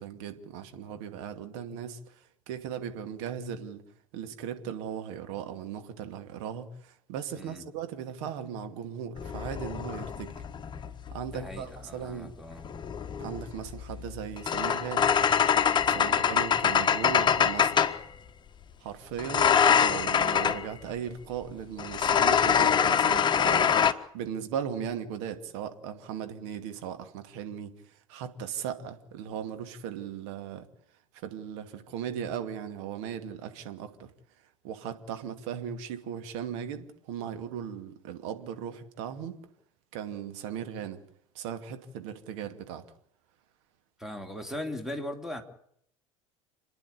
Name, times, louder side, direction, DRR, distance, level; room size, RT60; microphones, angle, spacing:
voice 1, 0.0-3.8 4.1-10.4 11.1-12.3 13.2-15.1 15.8-18.0 18.8-23.7 24.1-30.7 31.1-34.1 34.4-39.4 39.9-41.0 41.3-42.9, right 8 dB, 55° right, 2.5 m, -38 dB
sound 1, 9.2-11.3 12.5-18.0 19.2-20.7 21.8-23.9, left 7 dB, 25° left, 1.4 m, -24 dB
voice 2, 11.3-12.7 15.9-16.2 44.0-45.4, left 1 dB, ahead, 3.5 m, -39 dB
29.0 x 10.5 x 9.9 m
figure-of-eight pair, 75°, 17 cm